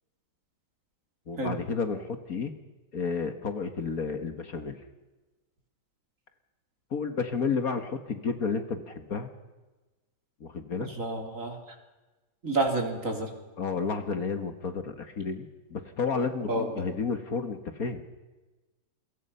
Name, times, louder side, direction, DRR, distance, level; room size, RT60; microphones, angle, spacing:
voice 1, 1.3-2.5 2.9-4.8 6.9-9.3 10.4-10.9 13.6-18.0, left 5 dB, 55° left, 8 dB, 2.0 m, -31 dB
voice 2, 10.8-11.6 12.4-13.3 16.5-16.8, right 2 dB, 45° right, 3 dB, 3.8 m, -29 dB
28.5 x 23.0 x 5.7 m, 1.2 s
omnidirectional pair, 1.9 m